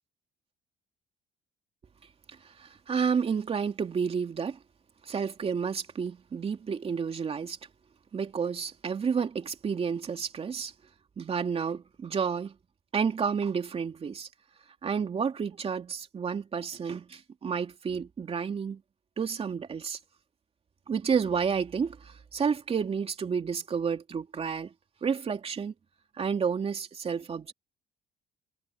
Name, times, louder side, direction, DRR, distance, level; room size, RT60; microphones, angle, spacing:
voice 1, 2.6-4.6 5.1-7.6 8.1-10.7 11.2-12.5 12.9-14.3 14.8-18.8 19.2-20.0 20.9-24.7 25.0-25.7 26.2-27.5, right 6 dB, 35° right, 2.9 m, -30 dB
cardioid pair, 110°, 17 cm